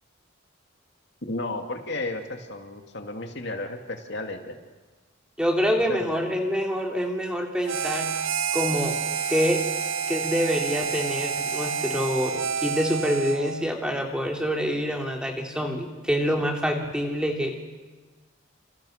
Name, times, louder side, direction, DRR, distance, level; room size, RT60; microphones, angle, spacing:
voice 1, 1.2-4.6 5.9-6.2, left 2 dB, 55° left, 4 dB, 2.5 m, -33 dB
voice 2, 5.4-8.1 8.5-9.0 9.3-9.6 10.1-17.6, equal, 5° right, 2 dB, 3.2 m, -26 dB
Harmonica, 7.6-13.7, right 6 dB, 75° right, 0.9 m, -29 dB
28.5 x 27.5 x 6.7 m, 1.3 s
head